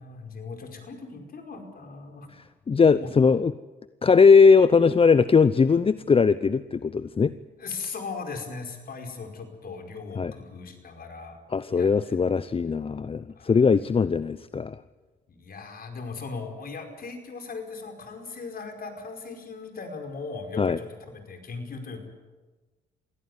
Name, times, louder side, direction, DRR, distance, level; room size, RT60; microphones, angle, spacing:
voice 1, 0.0-2.3 3.0-3.1 7.6-11.4 11.7-12.2 13.3-13.7 15.3-22.0, left 4 dB, 50° left, 4 dB, 5.0 m, -38 dB
voice 2, 2.7-3.5 4.0-7.3 10.2-10.3 11.5-14.8 20.6-20.8, left 5 dB, 30° left, 16 dB, 0.7 m, -19 dB
22.5 x 16.0 x 9.4 m, 1.3 s
hypercardioid pair, 55°, 20 cm